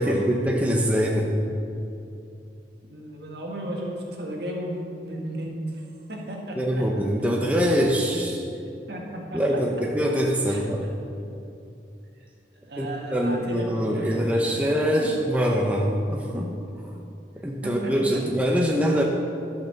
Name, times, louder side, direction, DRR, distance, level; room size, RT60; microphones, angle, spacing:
voice 1, 0.0-1.4 6.6-8.4 9.3-10.9 12.8-16.6 17.4-19.0, equal, 10° right, -1 dB, 0.7 m, -23 dB
voice 2, 2.8-6.9 8.9-9.6 10.5-10.6 12.7-15.1 17.6-18.2, right 1 dB, 60° right, -1 dB, 1.9 m, -34 dB
12.0 x 5.9 x 6.8 m, 2.7 s
head